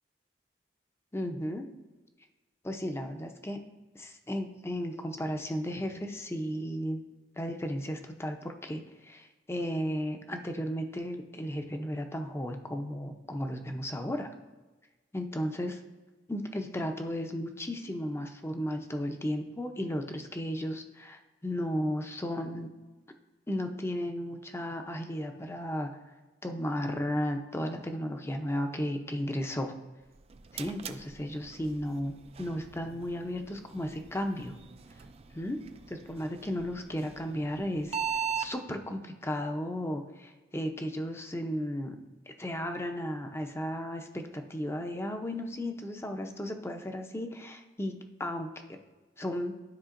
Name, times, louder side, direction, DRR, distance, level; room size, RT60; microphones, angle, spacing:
voice 1, 1.1-1.7 2.6-3.6 3.9-7.0 7.4-14.3 15.1-15.8 16.3-22.7 23.5-25.9 26.4-29.8 30.5-34.6 35.3-35.6 35.9-38.0 38.3-42.0 42.3-47.9 48.2-48.8 49.2-49.5, equal, 15° left, 5 dB, 0.6 m, -34 dB
sound 1, 30.0-38.5, right 7 dB, 35° right, 0.4 m, -40 dB
12.5 x 4.9 x 2.5 m, 1.2 s
head